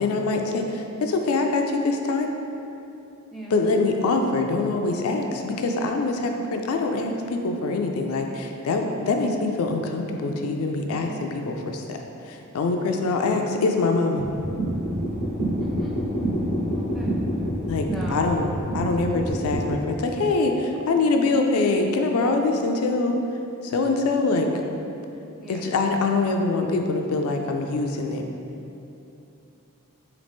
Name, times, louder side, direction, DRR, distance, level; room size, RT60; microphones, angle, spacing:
voice 1, 0.0-2.3 3.5-12.0 12.2-14.2 17.7-18.5 18.7-23.1 23.6-24.5 25.5-28.3, left 3 dB, 85° left, 3 dB, 0.4 m, -24 dB
voice 2, 10.9-11.2 15.6-16.0 16.7-17.2 17.9-18.3 25.4-25.6, right 1 dB, ahead, -5 dB, 0.5 m, -39 dB
sound 1, 14.2-19.7, equal, 60° right, 0.8 m, -27 dB
3.9 x 2.9 x 3.5 m, 2.8 s
head